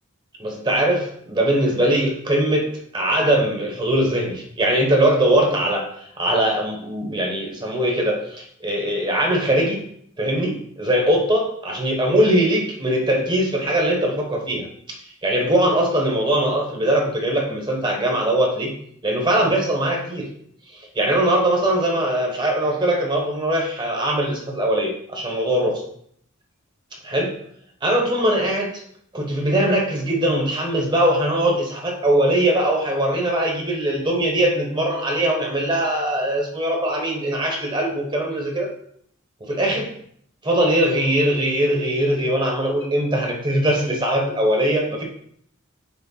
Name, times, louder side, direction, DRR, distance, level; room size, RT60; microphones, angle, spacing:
voice 1, 0.4-9.8 10.2-18.7 19.0-20.3 20.7-25.8 27.1-27.3 27.8-28.8 29.1-38.7 39.5-39.9 40.4-45.0, right 1 dB, 20° right, 0 dB, 1.0 m, -21 dB
6.0 x 3.3 x 5.6 m, 0.67 s
head